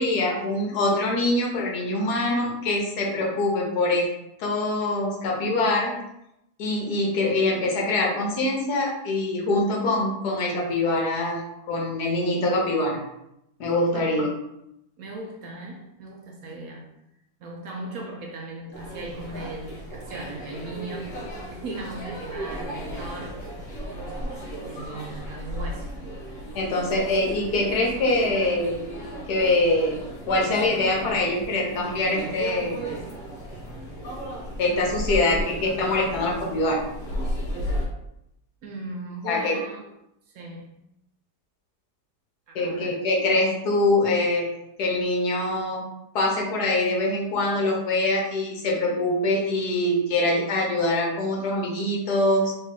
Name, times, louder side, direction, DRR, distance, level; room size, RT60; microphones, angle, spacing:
voice 1, 0.0-4.1 4.4-6.0 6.6-11.4 11.7-13.0 13.6-14.3 26.5-28.8 29.3-30.0 30.3-32.8 34.6-36.9 39.2-39.6 42.5-44.5 44.8-45.8 46.1-52.5, left 2 dB, 70° left, -1 dB, 1.4 m, -24 dB
voice 2, 13.9-14.3 15.0-16.9 17.4-23.5 23.9-25.9 38.6-39.9 40.3-40.7 42.5-43.0, right 2 dB, 65° right, 0 dB, 1.0 m, -38 dB
sound 1, 18.7-37.9, equal, 50° left, 1.4 m, -35 dB
3.2 x 3.2 x 3.6 m, 0.83 s
omnidirectional pair, 1.8 m